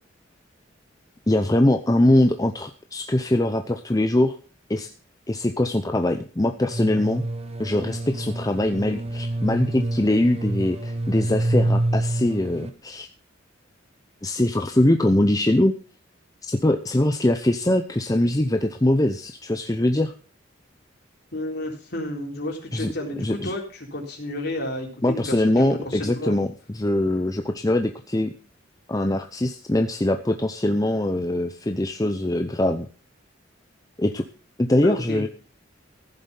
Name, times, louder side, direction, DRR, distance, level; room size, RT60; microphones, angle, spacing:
voice 1, 1.3-4.4 4.7-4.9 5.3-7.2 7.6-13.1 14.2-15.7 16.5-20.1 22.7-22.9 23.2-23.5 25.0-28.3 28.9-32.9 34.0-34.2 34.6-35.3, left 1 dB, 20° left, 6 dB, 0.7 m, -22 dB
sound 1, 6.7-12.7, right 1 dB, 30° right, 1.4 m, -27 dB
voice 2, 21.3-26.4 34.8-35.2, left 1 dB, 55° left, 1 dB, 3.9 m, -31 dB
15.0 x 7.3 x 5.6 m, 0.37 s
head